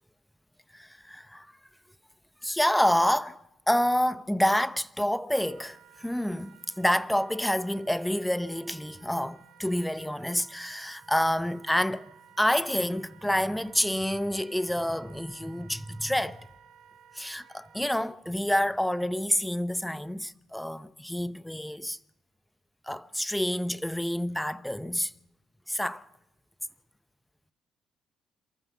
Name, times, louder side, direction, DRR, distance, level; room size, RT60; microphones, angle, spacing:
voice 1, 0.7-1.5 2.4-3.4 3.7-12.1 12.4-16.4 17.1-22.0 22.9-25.1 25.7-26.0, left 1 dB, 5° left, 0.8 m, -28 dB
Wind instrument woodwind instrument, 5.3-18.0, right 9 dB, 85° right, 1.7 m, -56 dB
27.0 x 14.0 x 7.1 m
cardioid pair, 90°, 0 cm